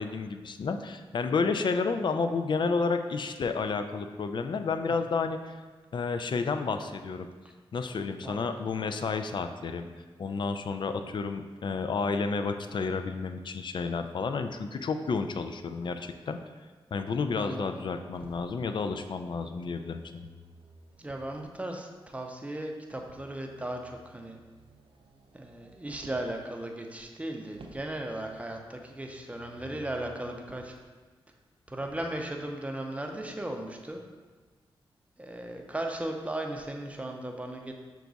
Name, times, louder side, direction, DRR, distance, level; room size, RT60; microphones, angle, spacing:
voice 1, 0.0-5.6 5.9-7.3 7.7-9.9 10.2-16.4 16.9-20.3, left 4 dB, 55° left, 8 dB, 0.4 m, -31 dB
voice 2, 4.9-5.2 8.2-8.6 17.4-17.8 21.0-24.4 25.3-30.8 31.7-34.0 35.2-37.7, right 1 dB, 15° right, 2 dB, 0.6 m, -37 dB
Motor vehicle (road), 18.1-21.6 22.9-26.4 27.5-30.8 31.7-32.1, right 2 dB, 65° right, 0.5 m, -54 dB
5.9 x 2.3 x 3.9 m, 1.4 s
cardioid pair, 55°, 10 cm